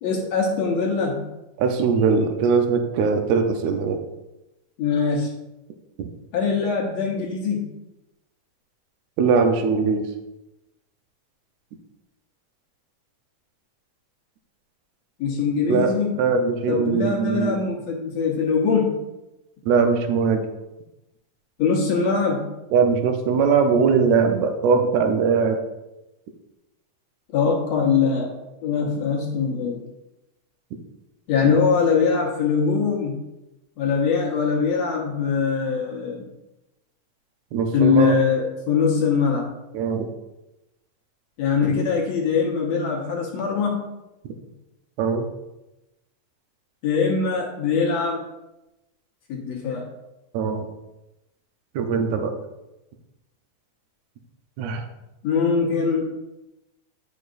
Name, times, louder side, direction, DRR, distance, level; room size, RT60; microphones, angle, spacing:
voice 1, 0.0-1.3 4.8-5.3 6.3-7.7 15.2-16.2 16.7-19.0 21.6-22.5 27.3-28.3 28.6-29.8 31.3-33.2 33.8-36.3 37.7-39.5 41.4-43.9 46.8-48.2 49.3-49.9 55.2-56.1, left 5 dB, 65° left, -1 dB, 1.9 m, -22 dB
voice 2, 1.6-4.0 6.0-6.1 9.2-10.1 15.7-17.6 19.6-20.4 22.7-25.6 37.5-38.1 39.7-40.1 45.0-45.3 50.3-50.7 51.7-52.3 54.6-54.8, right 5 dB, 70° right, 5 dB, 1.8 m, -21 dB
9.2 x 6.4 x 2.5 m, 0.97 s
omnidirectional pair, 3.7 m